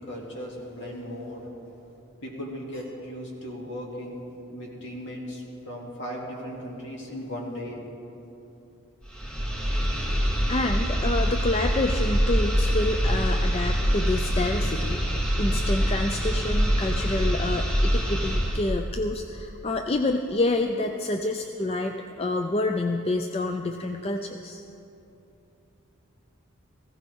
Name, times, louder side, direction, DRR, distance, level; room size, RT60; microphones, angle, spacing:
voice 1, 0.1-1.5 2.2-7.8, equal, 55° left, -2 dB, 2.5 m, -37 dB
sound 1, 9.0-18.7, equal, 5° left, 1.2 m, -25 dB
voice 2, 10.5-24.6, left 2 dB, 25° left, 5 dB, 0.4 m, -28 dB
18.0 x 16.0 x 3.6 m, 2.9 s
head